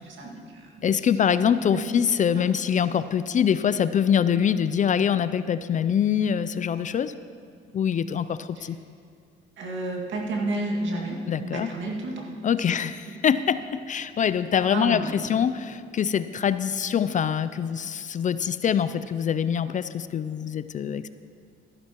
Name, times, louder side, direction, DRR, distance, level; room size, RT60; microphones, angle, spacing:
voice 1, 0.1-1.3 1.7-1.9 2.3-2.5 8.6-8.7 9.6-12.2 12.6-12.7 13.0-13.1 14.7-15.3, right 2 dB, 70° right, -1 dB, 2.0 m, -32 dB
voice 2, 0.8-7.1 7.7-8.8 11.3-11.7 12.4-15.0 15.3-21.1, left 8 dB, 40° left, 14 dB, 0.4 m, -24 dB
13.5 x 12.0 x 3.0 m, 2.2 s
cardioid pair, 90°, 20 cm